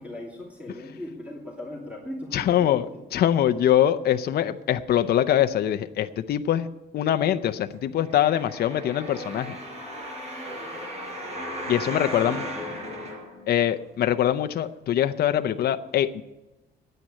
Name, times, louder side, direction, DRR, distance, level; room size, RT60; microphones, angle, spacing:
voice 1, 0.0-3.0 12.0-12.7, left 1 dB, 5° right, -3 dB, 2.8 m, -39 dB
voice 2, 2.3-2.9 3.1-6.7 6.9-9.6 11.7-12.5 13.5-16.2, left 11 dB, 60° left, 9 dB, 0.6 m, -23 dB
sound 1, 8.0-14.0 14.6-14.7, equal, 35° right, 4.8 m, -36 dB
9.9 x 9.3 x 9.8 m, 1.0 s
cardioid pair, 165°, 18 cm